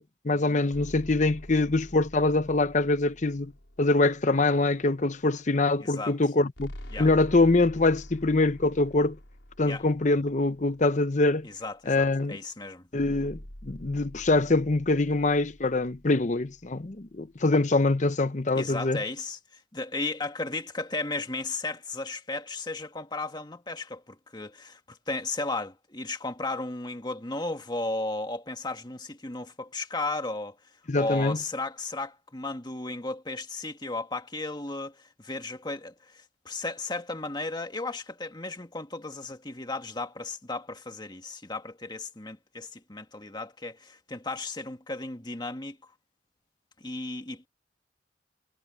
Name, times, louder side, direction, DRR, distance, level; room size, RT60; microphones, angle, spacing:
voice 1, 0.0-3.5 3.8-6.7 7.0-9.2 9.6-11.5 11.9-12.4 12.9-19.0 30.9-31.4, left 2 dB, 40° left, 0.8 m, -24 dB
sound 1, 0.7-5.2 6.6-11.4 13.0-17.3, equal, 85° left, 4.9 m, -47 dB
voice 2, 5.8-6.2 6.9-7.1 9.6-9.8 11.4-12.9 18.6-30.6 30.9-45.9 46.8-47.5, left 2 dB, 20° left, 1.8 m, -35 dB
head